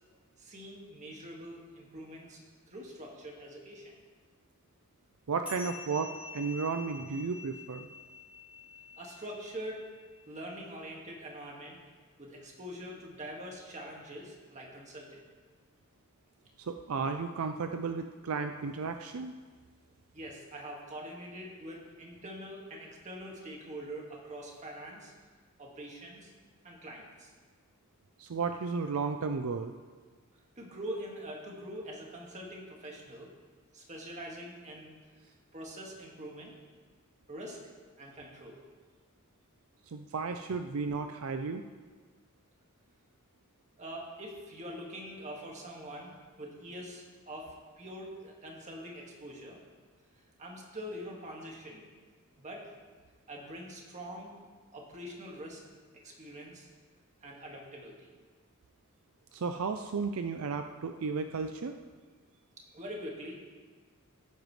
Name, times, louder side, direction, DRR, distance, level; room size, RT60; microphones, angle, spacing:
voice 1, 0.4-2.4 2.7-4.0 9.0-9.9 10.3-11.8 12.2-15.2 20.1-25.1 25.6-26.3 26.6-27.3 30.6-33.3 33.7-34.9 35.5-36.5 37.3-37.6 38.0-38.6 43.8-46.1 46.4-49.6 50.4-51.9 52.4-52.7 53.3-54.3 54.7-55.6 56.0-56.7 57.2-58.1 62.7-63.3, equal, 35° right, -1 dB, 1.9 m, -44 dB
voice 2, 5.3-7.9 16.6-19.3 28.2-29.7 39.9-41.6 59.3-61.8, right 5 dB, 75° right, 7 dB, 0.5 m, -34 dB
sound 1, 5.4-10.3, left 4 dB, 5° right, 3.0 m, -48 dB
16.0 x 9.0 x 3.2 m, 1.5 s
head